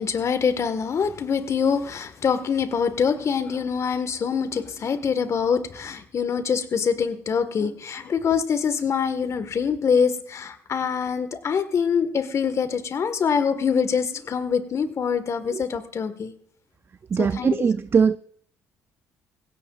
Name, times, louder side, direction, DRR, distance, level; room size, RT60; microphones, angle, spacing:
voice 1, 0.0-16.3 17.2-17.7, left 6 dB, 50° left, 1.5 m, -24 dB
voice 2, 17.1-18.2, right 6 dB, 40° right, 0.4 m, -21 dB
19.5 x 16.5 x 2.4 m
supercardioid pair, 60°, 6 cm